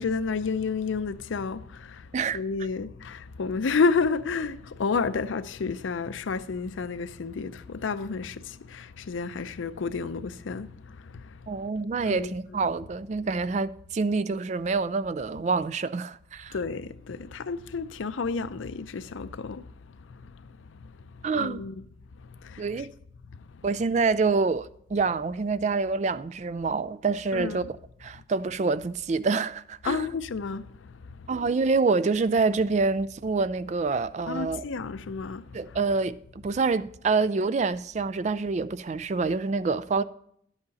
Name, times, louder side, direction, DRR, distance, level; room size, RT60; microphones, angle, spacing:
voice 1, 0.0-11.5 12.0-12.7 16.5-21.8 22.1-22.9 23.7-23.8 27.3-27.7 29.8-31.5 34.3-35.8, left 4 dB, 85° left, 0.5 m, -31 dB
voice 2, 11.5-16.6 21.2-21.6 22.6-22.9 23.6-27.6 28.0-30.1 31.3-34.6 35.5-40.0, right 4 dB, 35° right, 0.3 m, -26 dB
10.5 x 8.0 x 4.1 m
head